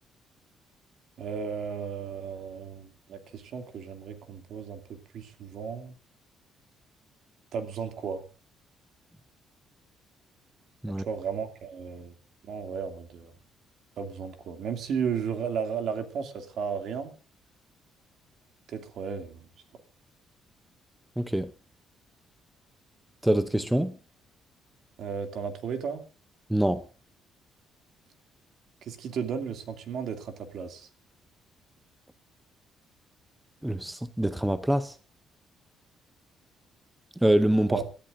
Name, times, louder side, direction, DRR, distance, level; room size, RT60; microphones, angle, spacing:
voice 1, 1.2-5.9 7.5-8.2 10.9-12.1 12.4-13.3 14.0-17.1 18.7-19.5 25.0-26.0 28.8-30.9 37.7-37.9, right 6 dB, 55° right, 2.5 m, -34 dB
voice 2, 21.2-21.5 23.2-24.0 26.5-26.8 33.6-35.0 37.2-37.8, right 1 dB, 5° right, 0.6 m, -25 dB
27.0 x 13.5 x 2.6 m
cardioid pair, 170°, 0 cm